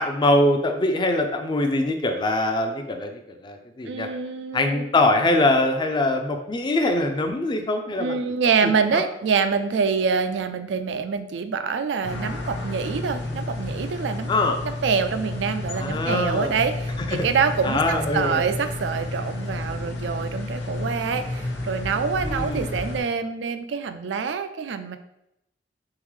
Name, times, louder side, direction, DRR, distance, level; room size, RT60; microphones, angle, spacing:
voice 1, 0.0-4.1 4.5-8.2 8.6-9.0 14.3-14.6 15.7-16.5 17.1-17.3 17.6-18.5 22.2-22.8, left 2 dB, 25° left, 5 dB, 0.4 m, -23 dB
voice 2, 3.8-4.9 7.9-14.3 14.8-25.0, right 5 dB, 75° right, 10 dB, 0.4 m, -26 dB
sound 1, 12.0-23.0, left 2 dB, 80° left, 0.9 m, -31 dB
3.9 x 3.7 x 3.1 m, 0.83 s
head